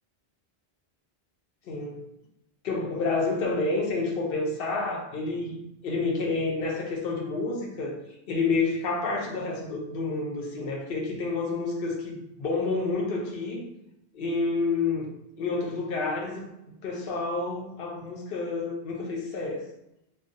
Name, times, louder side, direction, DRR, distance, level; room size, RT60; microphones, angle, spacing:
voice 1, 1.7-2.0 2.6-8.0 8.3-13.6 14.1-15.1 15.4-16.5 16.8-19.6, left 3 dB, 65° left, 0 dB, 0.7 m, -29 dB
2.4 x 2.0 x 2.5 m, 0.86 s
omnidirectional pair, 1.1 m